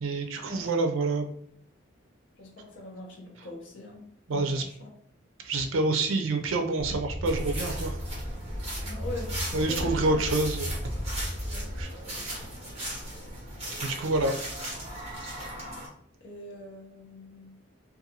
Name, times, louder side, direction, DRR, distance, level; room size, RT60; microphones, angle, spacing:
voice 1, 0.0-1.3 4.3-4.6 5.4-8.0 9.5-10.8 11.8-11.9 13.8-14.3, right 2 dB, 75° right, 4 dB, 0.4 m, -27 dB
voice 2, 2.4-4.9 8.8-10.2 11.5-11.7 16.2-17.5, left 2 dB, 65° left, 0 dB, 0.6 m, -42 dB
sound 1, 6.8-11.8, equal, 20° left, 0.7 m, -35 dB
sound 2, 7.2-15.9, right 1 dB, 30° right, 1.1 m, -38 dB
2.6 x 2.3 x 2.7 m, 0.64 s
head